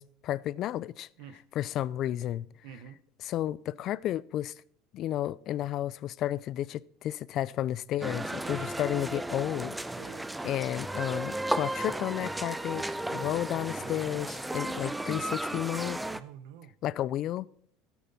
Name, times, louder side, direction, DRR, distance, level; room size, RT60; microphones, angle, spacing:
voice 1, 0.0-1.1 1.6-2.5 3.3-4.5 4.9-9.8 10.4-16.0 16.8-17.5, left 12 dB, 50° left, 0.3 m, -32 dB
voice 2, 2.6-3.0 8.4-8.8 10.0-10.3 13.7-14.3 16.1-16.7, right 9 dB, 75° right, 0.9 m, -48 dB
sound 1, 8.0-16.2, right 1 dB, 5° right, 0.5 m, -34 dB
13.0 x 9.3 x 4.1 m
supercardioid pair, 120°, 0 cm